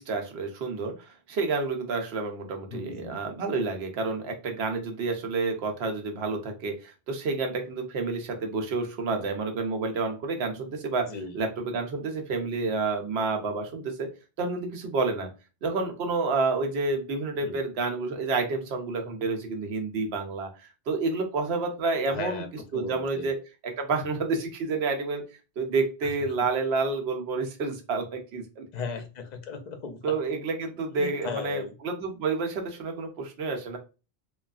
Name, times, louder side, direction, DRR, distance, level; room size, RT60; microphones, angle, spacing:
voice 1, 0.0-14.1 14.4-15.3 15.6-22.4 22.7-23.4 23.6-25.2 25.6-28.6 30.0-33.8, right 3 dB, 75° right, 4 dB, 0.9 m, -29 dB
voice 2, 2.7-3.2 11.0-11.4 17.4-17.6 22.1-22.5 22.7-23.3 26.0-26.1 28.7-30.2 31.0-31.7, left 5 dB, 50° left, 6 dB, 0.6 m, -37 dB
3.0 x 2.3 x 2.3 m, 0.31 s
omnidirectional pair, 1.1 m